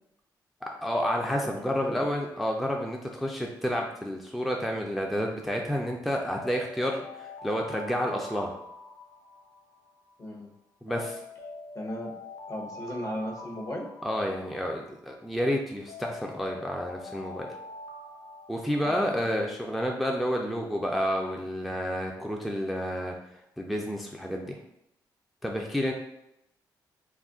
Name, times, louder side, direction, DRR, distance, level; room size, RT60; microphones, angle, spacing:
voice 1, 0.8-8.5 10.8-11.2 14.0-17.5 18.5-23.1 23.6-24.6 25.4-25.9, equal, ahead, 0 dB, 0.3 m, -30 dB
voice 2, 1.4-2.0 10.2-10.5 11.7-12.1 12.5-13.9 18.8-19.3, left 1 dB, 45° left, 0 dB, 0.7 m, -36 dB
Alarm, 6.2-10.3 10.9-15.3 15.9-19.7, left 2 dB, 85° left, 0.4 m, -45 dB
2.4 x 2.1 x 3.5 m, 0.80 s
cardioid pair, 80°, 8 cm